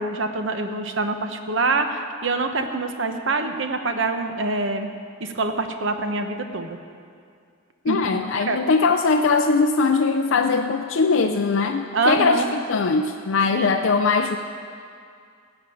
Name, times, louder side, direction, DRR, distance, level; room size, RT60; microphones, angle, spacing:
voice 1, 0.0-4.9 5.2-6.8 7.9-8.6 11.9-12.5 13.5-13.7, right 3 dB, 55° right, 6 dB, 0.9 m, -25 dB
voice 2, 7.8-14.4, left 4 dB, 60° left, 4 dB, 0.5 m, -21 dB
16.0 x 6.1 x 8.6 m, 2.3 s
head